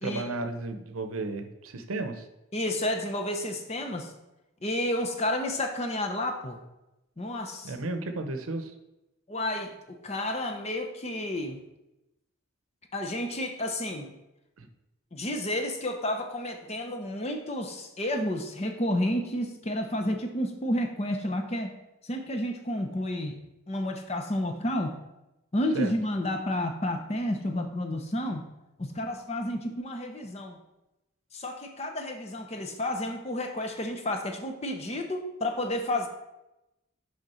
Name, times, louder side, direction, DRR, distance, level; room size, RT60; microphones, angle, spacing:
voice 1, 0.0-2.2 7.6-8.7 14.6-14.7 25.7-25.9, right 2 dB, 85° right, 8 dB, 0.7 m, -33 dB
voice 2, 2.5-4.1 4.6-6.6 7.2-7.7 9.3-11.6 12.9-14.1 15.1-21.7 22.0-23.3 23.7-24.9 25.5-28.4 28.9-30.6 31.3-36.1, left 1 dB, 30° left, 5 dB, 0.7 m, -31 dB
6.4 x 5.1 x 4.3 m, 0.94 s
head